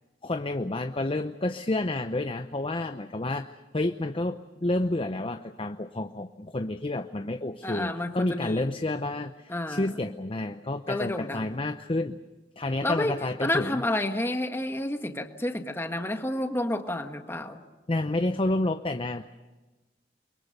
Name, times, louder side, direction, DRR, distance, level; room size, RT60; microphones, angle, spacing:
voice 1, 0.2-12.2 12.6-13.8 17.9-19.3, left 2 dB, 30° left, 8 dB, 0.7 m, -30 dB
voice 2, 7.6-8.7 9.5-9.9 10.9-11.7 12.8-17.6, left 1 dB, 15° left, 6 dB, 1.6 m, -30 dB
29.0 x 23.0 x 6.7 m, 1.2 s
head